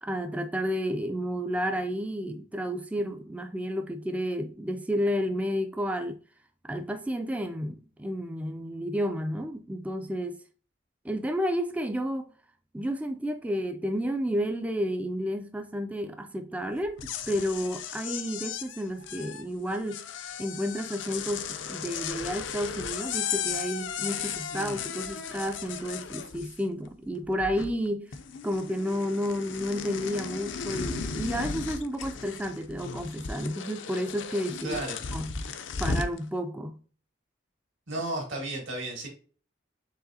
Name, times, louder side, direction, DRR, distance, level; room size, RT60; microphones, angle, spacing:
voice 1, 0.0-6.2 6.6-10.4 11.0-12.3 12.7-20.0 20.4-28.1 28.4-34.8 35.1-35.3 35.8-36.8, equal, 5° right, 0.3 m, -31 dB
sound 1, 16.8-26.9 27.1-27.9 28.1-36.2, left 6 dB, 70° left, 0.5 m, -36 dB
voice 2, 34.6-35.0 37.9-39.1, right 2 dB, 75° right, 1.9 m, -33 dB
4.8 x 3.3 x 2.6 m
head